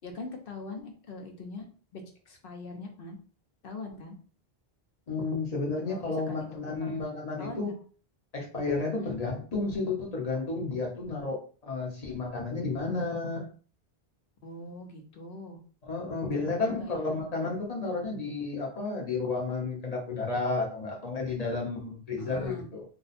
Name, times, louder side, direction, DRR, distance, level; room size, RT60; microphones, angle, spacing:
voice 1, 0.0-1.6 1.9-3.2 3.6-4.2 5.8-7.0 7.4-7.7 9.0-9.2 14.4-15.6 16.3-17.2 22.2-22.7, left 2 dB, 65° left, 3 dB, 0.9 m, -42 dB
voice 2, 5.1-7.7 8.3-13.5 15.8-22.8, left 3 dB, 40° left, -1 dB, 0.9 m, -32 dB
2.6 x 2.2 x 4.1 m, 0.40 s
omnidirectional pair, 1.1 m